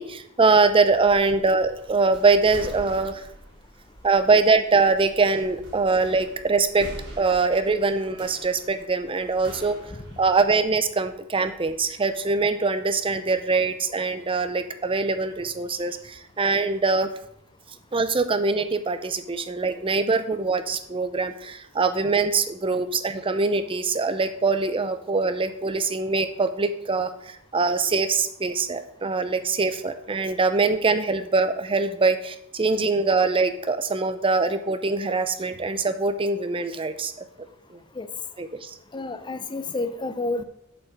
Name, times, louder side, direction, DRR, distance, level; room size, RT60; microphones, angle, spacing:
voice 1, 0.0-3.2 4.0-6.9 7.2-9.8 10.2-17.1 17.9-37.1 37.7-37.8 38.4-38.8, right 4 dB, 25° right, 10 dB, 0.6 m, -23 dB
sound 1, 0.6-10.7, equal, 55° right, 2.7 m, -45 dB
voice 2, 38.9-40.4, left 2 dB, 20° left, 10 dB, 0.6 m, -29 dB
7.5 x 5.5 x 5.9 m, 0.74 s
head